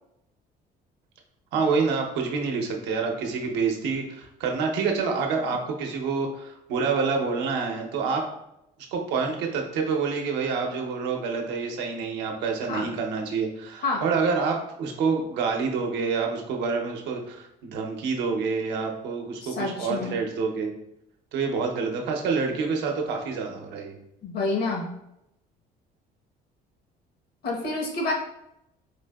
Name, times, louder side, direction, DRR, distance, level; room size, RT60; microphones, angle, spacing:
voice 1, 1.5-8.2 8.9-20.7 21.3-24.0, right 5 dB, 85° right, 2 dB, 0.7 m, -27 dB
voice 2, 19.4-20.2 24.2-24.9 27.4-28.1, left 3 dB, 65° left, 0 dB, 0.9 m, -28 dB
4.3 x 2.7 x 2.2 m, 0.83 s
cardioid pair, 110°, 17 cm